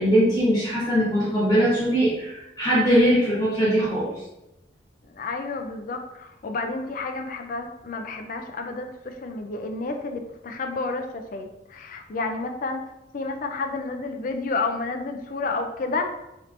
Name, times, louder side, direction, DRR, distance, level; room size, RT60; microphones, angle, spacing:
voice 1, 0.0-4.1, equal, 20° left, -10 dB, 1.4 m, -21 dB
voice 2, 5.1-12.8 13.1-16.1, left 3 dB, 50° left, 5 dB, 0.4 m, -30 dB
3.2 x 3.0 x 2.5 m, 0.91 s
head